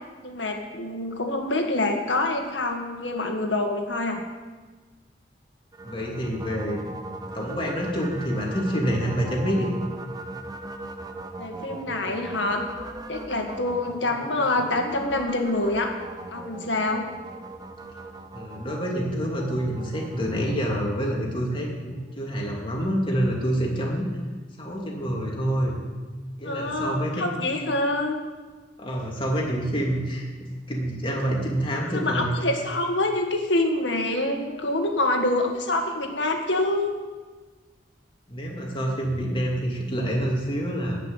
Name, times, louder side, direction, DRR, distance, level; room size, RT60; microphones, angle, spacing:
voice 1, 0.2-4.2 11.4-12.6 13.1-15.9 16.3-17.1 26.4-28.2 31.9-36.9, left 2 dB, 80° left, 3 dB, 1.9 m, -26 dB
sound 1, 5.7-21.9, right 2 dB, 20° right, 0.7 m, -39 dB
voice 2, 5.8-6.8 7.3-9.8 18.3-24.0 24.6-25.8 26.4-27.3 28.8-32.4 38.3-41.0, equal, 30° left, -1 dB, 2.6 m, -27 dB
14.0 x 5.9 x 9.1 m, 1.3 s
head